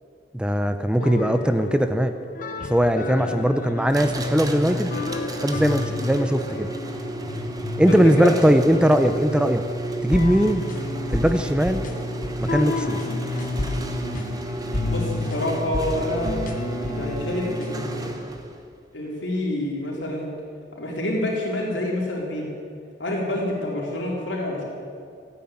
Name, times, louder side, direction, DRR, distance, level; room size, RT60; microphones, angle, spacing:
voice 1, 0.3-2.1 2.7-4.9 5.4-6.7 7.8-9.6 10.0-10.7 11.1-11.8 12.4-13.0, equal, 5° right, 9 dB, 0.5 m, -20 dB
sound 1, 1.0-17.9, left 2 dB, 45° left, 0.9 m, -31 dB
sound 2, 3.9-18.6, right 1 dB, 20° right, 1.1 m, -32 dB
voice 2, 7.9-8.3 14.8-16.4 16.9-18.1 18.9-20.3 20.8-22.5 23.0-24.6, left 1 dB, 85° left, -3 dB, 4.2 m, -27 dB
14.5 x 9.5 x 8.9 m, 2.3 s
head